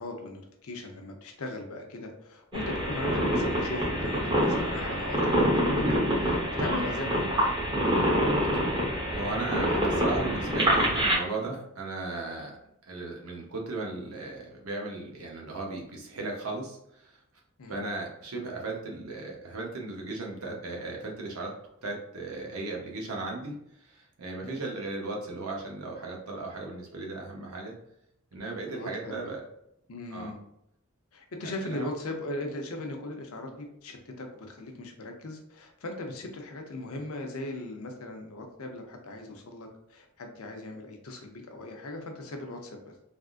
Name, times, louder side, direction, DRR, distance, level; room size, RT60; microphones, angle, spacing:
voice 1, 0.0-5.2 5.5-7.5 17.6-17.8 24.4-24.7 28.4-29.3 29.9-30.4 31.1-42.9, left 2 dB, 80° left, 3 dB, 0.6 m, -38 dB
sound 1, 2.5-11.2, equal, 20° right, 1.1 m, -26 dB
voice 2, 9.1-12.6 12.9-17.1 17.7-21.5 21.8-23.5 23.8-27.7 28.3-29.4 30.1-30.3 31.6-31.9, right 2 dB, 80° right, 0 dB, 0.8 m, -36 dB
3.5 x 2.4 x 2.4 m, 0.78 s
head